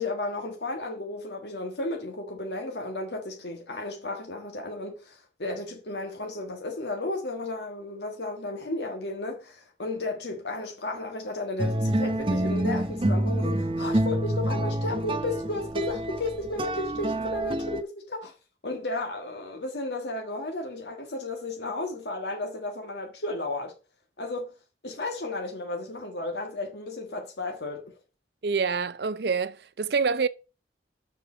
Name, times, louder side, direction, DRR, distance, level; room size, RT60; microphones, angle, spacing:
voice 1, 0.0-18.3 18.6-23.7 24.2-24.5 24.8-28.0, left 2 dB, 75° left, 1.6 m, -33 dB
sound 1, 11.6-17.8, right 1 dB, 30° right, 0.7 m, -27 dB
voice 2, 28.4-30.3, right 5 dB, 65° right, 0.5 m, -26 dB
6.7 x 6.5 x 6.1 m
head